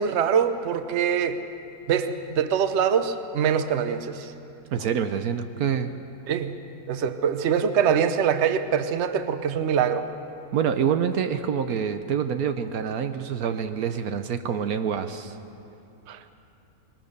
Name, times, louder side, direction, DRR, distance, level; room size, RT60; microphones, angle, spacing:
voice 1, 0.0-1.4 1.9-4.3 6.3-6.6 6.9-10.1 16.1-16.3, right 7 dB, 50° right, 10 dB, 1.0 m, -24 dB
voice 2, 4.7-5.9 10.5-15.4, right 7 dB, 70° right, 9 dB, 1.2 m, -26 dB
21.5 x 19.5 x 6.7 m, 2.9 s
omnidirectional pair, 1.6 m